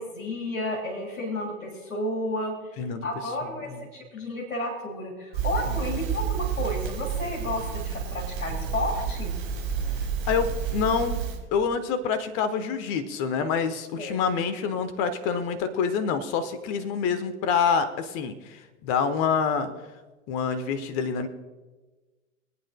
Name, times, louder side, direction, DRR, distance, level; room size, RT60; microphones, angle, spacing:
voice 1, 0.0-2.5 3.0-9.3 14.0-14.2, left 1 dB, 80° left, -4 dB, 3.1 m, -32 dB
Crackle, 5.3-11.4, right 7 dB, 55° right, 4.5 m, -30 dB
voice 2, 10.3-11.2 11.5-19.7 20.3-21.3, left 6 dB, 35° left, 12 dB, 1.1 m, -27 dB
24.5 x 9.1 x 2.3 m, 1.2 s
figure-of-eight pair, 100°, 41 cm